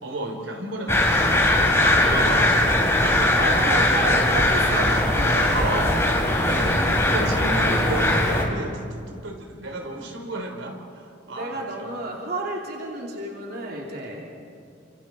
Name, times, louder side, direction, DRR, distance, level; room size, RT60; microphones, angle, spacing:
voice 1, 0.0-1.5 2.0-2.6 2.9-3.9 5.5-5.9 6.2-11.9, right 2 dB, 80° right, 3 dB, 3.5 m, -33 dB
sound 1, 0.9-8.5, left 1 dB, 15° left, 3.0 m, -20 dB
voice 2, 1.8-2.6 3.4-6.1 11.3-14.2, right 2 dB, 55° right, -1 dB, 2.9 m, -31 dB
29.5 x 26.5 x 4.4 m, 2.4 s
head